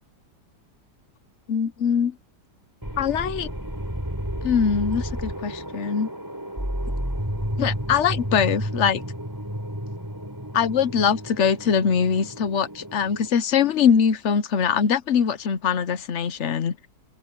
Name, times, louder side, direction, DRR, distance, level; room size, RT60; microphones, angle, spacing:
voice 1, 1.5-2.1 3.0-3.5 4.4-6.1 7.6-9.0 10.5-16.7, left 7 dB, 50° left, 1.0 m, -22 dB
sound 1, 2.8-13.3, equal, 10° right, 6.2 m, -32 dB
open air
omnidirectional pair, 1.9 m